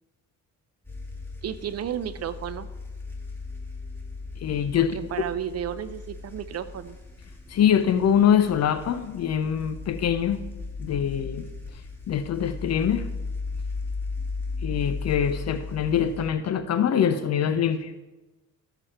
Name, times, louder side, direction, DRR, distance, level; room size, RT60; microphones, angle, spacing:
sound 1, 0.8-16.3, left 3 dB, 5° left, 2.5 m, -36 dB
voice 1, 1.4-2.7 4.9-7.0, right 9 dB, 55° right, 13 dB, 0.8 m, -32 dB
voice 2, 4.4-5.0 7.5-10.4 10.8-11.5 12.1-13.1 14.6-17.9, left 8 dB, 55° left, 11 dB, 0.7 m, -24 dB
13.5 x 7.0 x 4.4 m, 1.1 s
cardioid pair, 90°, 30 cm